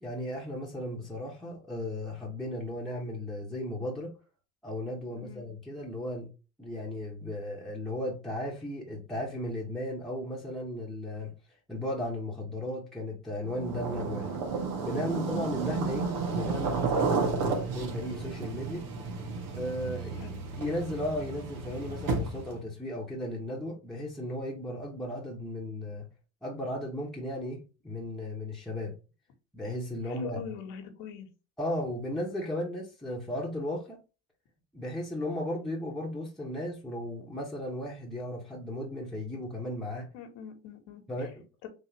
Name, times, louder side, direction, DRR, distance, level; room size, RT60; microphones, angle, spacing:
voice 1, 0.0-4.1 4.6-6.3 6.6-11.3 11.7-14.4 14.8-18.9 19.5-20.2 20.6-26.1 26.4-28.9 29.5-30.4 31.6-34.0 34.7-40.1 41.1-41.4, left 1 dB, ahead, 1.2 m, -35 dB
voice 2, 5.2-5.5 15.0-15.5 20.2-20.4 30.0-31.3 40.1-41.3 41.6-41.7, left 8 dB, 70° left, 1.4 m, -43 dB
sound 1, 13.4-22.6, right 4 dB, 70° right, 1.4 m, -32 dB
3.8 x 2.8 x 2.9 m
supercardioid pair, 100°, 34 cm